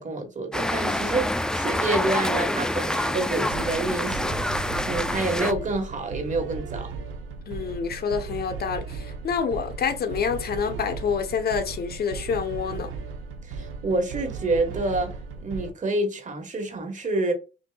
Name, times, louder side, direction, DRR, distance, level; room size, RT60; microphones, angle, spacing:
voice 1, 0.0-6.9 13.4-15.1 15.4-17.3, right 2 dB, 40° right, 1.4 m, -28 dB
sound 1, 0.5-5.5, left 1 dB, 5° left, 0.3 m, -26 dB
sound 2, 3.4-15.7, right 5 dB, 85° right, 0.8 m, -36 dB
voice 2, 7.5-12.9, left 6 dB, 50° left, 0.9 m, -27 dB
5.7 x 2.6 x 2.3 m
cardioid pair, 90°, 20 cm